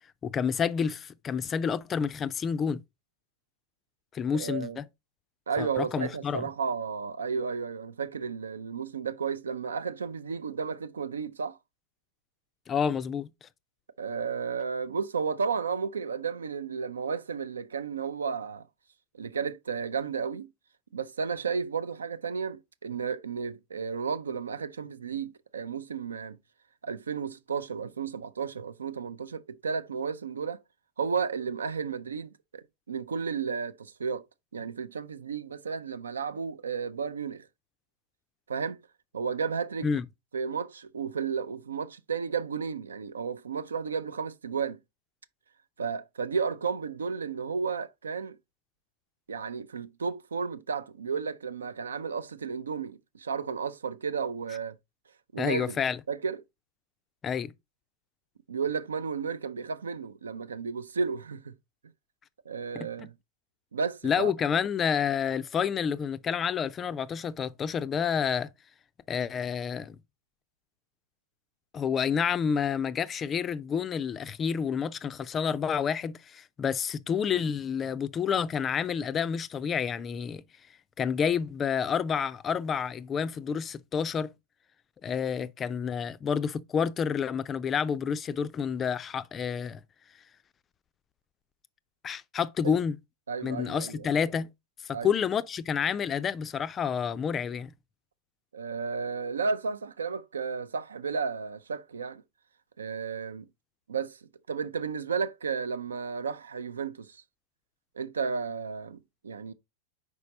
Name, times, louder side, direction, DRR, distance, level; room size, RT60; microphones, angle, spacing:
voice 1, 0.2-2.8 4.1-4.9 5.6-6.5 12.7-13.5 39.8-40.1 55.4-56.0 57.2-57.5 62.7-63.1 64.0-68.5 69.1-70.0 71.7-80.4 81.0-84.3 85.0-89.8 92.0-93.0 93.4-94.5 94.8-97.7, left 7 dB, 25° left, 0.3 m, -29 dB
voice 2, 4.3-4.8 5.5-11.6 14.0-18.7 19.1-20.5 20.9-26.4 26.8-30.6 31.0-34.2 34.5-37.5 38.5-38.8 39.1-39.9 40.3-44.8 45.8-48.4 49.3-54.7 55.3-55.8 56.1-56.4 58.5-61.5 62.5-63.1 63.7-64.3 92.6-92.8 93.3-94.1 94.9-95.1 98.5-102.2 102.8-103.5 103.9-107.2 108.0-109.5, right 5 dB, 70° right, 0.4 m, -33 dB
5.2 x 4.8 x 3.9 m
figure-of-eight pair, 90°, 0 cm